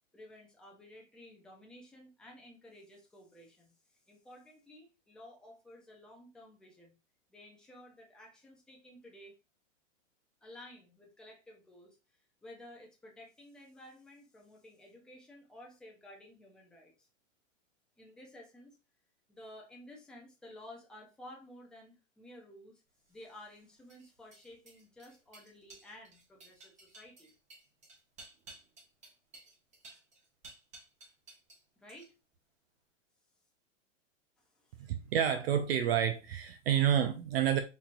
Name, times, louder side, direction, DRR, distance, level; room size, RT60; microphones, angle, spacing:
voice 1, 0.1-6.9 7.3-9.3 10.4-12.0 12.4-17.1 18.0-18.8 19.3-22.8 23.1-27.3 31.8-32.1 34.4-34.9, left 1 dB, ahead, 0.4 m, -54 dB
sound 1, 23.1-31.6 31.9-32.4, right 2 dB, 20° right, 1.4 m, -56 dB
voice 2, 34.9-37.6, right 9 dB, 50° right, 0.5 m, -29 dB
4.4 x 2.9 x 2.5 m
hypercardioid pair, 130°, 38 cm